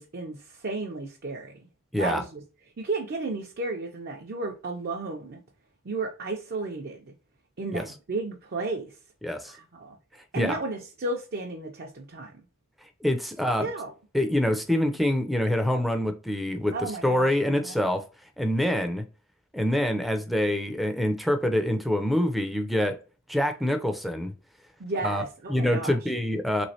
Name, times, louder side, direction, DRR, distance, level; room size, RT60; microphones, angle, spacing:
voice 1, 0.0-1.7 2.0-2.4 2.8-5.4 5.8-7.1 7.6-9.0 9.4-10.0 10.3-12.3 13.6-13.9 16.7-17.8 24.8-26.0, right 3 dB, 50° right, 0.5 m, -33 dB
voice 2, 9.2-9.5 10.4-10.6 13.0-13.7 14.1-18.0 18.4-19.0 19.5-23.0 23.3-24.3 25.0-25.2 25.5-26.7, left 1 dB, ahead, 0.4 m, -25 dB
3.2 x 3.1 x 2.7 m
head